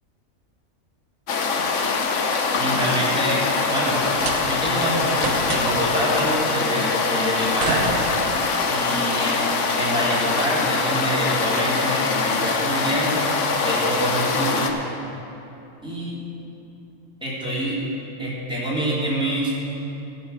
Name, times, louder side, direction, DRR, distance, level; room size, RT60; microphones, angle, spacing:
sound 1, 1.3-14.7, left 4 dB, 65° left, 1.2 m, -23 dB
voice 1, 2.5-4.0 4.4-8.0 8.7-9.5 9.8-13.2 13.6-14.7 15.8-16.2 17.2-17.8 18.2-19.6, equal, 5° right, -8 dB, 3.0 m, -26 dB
sound 2, 3.9-4.8 5.2-5.9 7.1-8.5, right 4 dB, 75° right, 1.3 m, -30 dB
14.5 x 5.6 x 8.0 m, 2.8 s
omnidirectional pair, 1.5 m